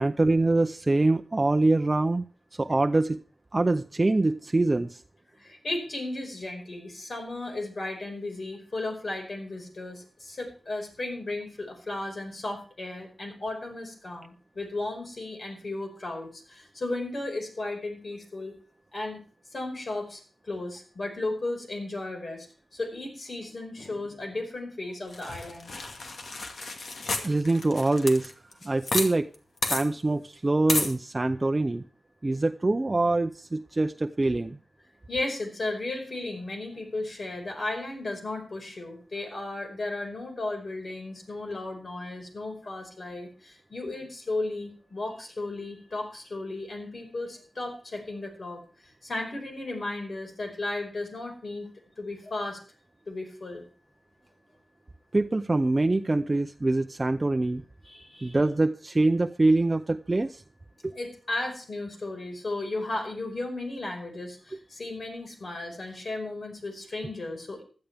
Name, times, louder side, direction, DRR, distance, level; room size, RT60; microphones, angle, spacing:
voice 1, 0.0-2.2 2.6-3.2 3.5-5.0 27.2-28.3 28.6-29.3 29.7-31.8 32.2-34.6 55.1-57.6 58.2-60.4 60.8-60.9, right 2 dB, 35° right, 8 dB, 0.6 m, -24 dB
voice 2, 5.4-18.5 18.9-22.5 22.7-25.7 35.1-51.7 52.0-52.6 53.1-53.6 57.8-58.4 60.9-67.6, left 2 dB, 60° left, 3 dB, 5.1 m, -35 dB
sound 1, 25.1-29.1 29.3-29.4 29.6-29.8 30.7-30.9, left 3 dB, 80° left, 2.2 m, -31 dB
16.0 x 12.5 x 3.5 m, 0.39 s
cardioid pair, 60°, 0 cm